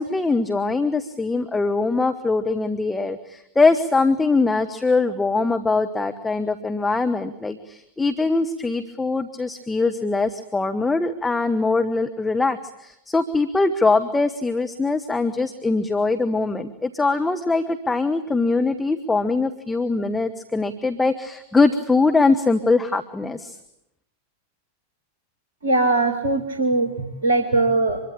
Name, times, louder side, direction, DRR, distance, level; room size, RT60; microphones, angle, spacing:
voice 1, 0.0-23.6, left 3 dB, 10° left, 6 dB, 1.4 m, -22 dB
voice 2, 25.6-26.9 27.2-28.0, right 2 dB, 65° right, 6 dB, 2.5 m, -20 dB
26.0 x 22.5 x 8.8 m, 0.80 s
figure-of-eight pair, 90°, 0 cm